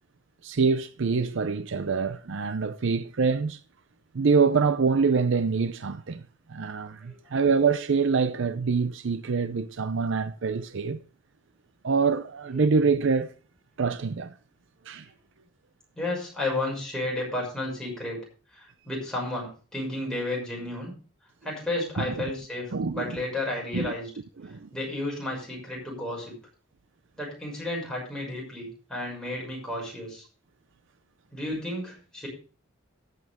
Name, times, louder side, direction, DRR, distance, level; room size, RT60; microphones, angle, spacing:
voice 1, 0.4-3.6 4.1-6.2 6.5-11.0 11.8-13.3 13.8-14.3 14.9-15.1 22.0-22.1 22.7-23.2 23.7-23.9 24.4-24.7, right 5 dB, 60° right, 0.5 m, -25 dB
voice 2, 16.0-18.2 18.5-20.9 21.4-24.1 24.7-26.3 27.2-30.2 31.3-32.3, left 2 dB, 5° left, 6.2 m, -32 dB
14.0 x 9.4 x 3.6 m
head